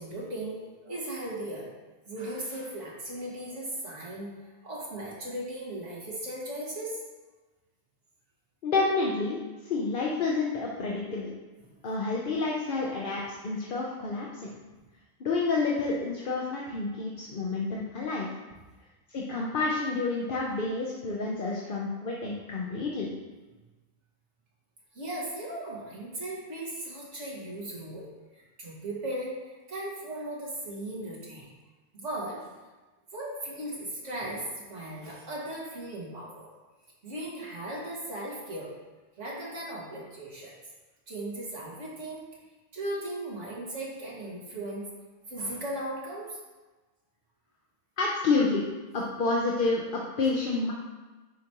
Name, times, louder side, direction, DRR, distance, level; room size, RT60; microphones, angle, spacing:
voice 1, 0.0-1.7 2.1-7.0 24.9-28.1 28.3-31.5 31.9-32.5 33.1-36.5 37.0-38.7 39.2-40.6 41.1-42.3 42.7-44.9 45.3-46.4, right 1 dB, 70° right, -4 dB, 2.1 m, -37 dB
voice 2, 8.6-11.3 11.8-14.4 15.2-18.3 19.1-23.1 48.0-48.6 48.9-50.7, left 3 dB, 50° left, -2 dB, 0.9 m, -29 dB
10.0 x 5.0 x 3.0 m, 1.2 s
omnidirectional pair, 1.3 m